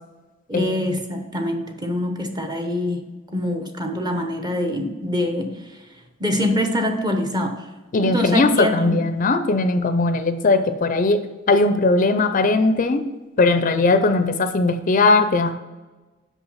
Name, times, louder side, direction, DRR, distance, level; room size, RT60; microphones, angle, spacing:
voice 1, 0.5-3.1 3.3-5.6 6.2-7.5 8.0-9.0, left 1 dB, 20° right, 4 dB, 0.9 m, -24 dB
voice 2, 7.9-13.0 13.4-15.5, left 3 dB, 45° left, 9 dB, 0.5 m, -19 dB
5.9 x 5.7 x 5.6 m, 1.2 s
head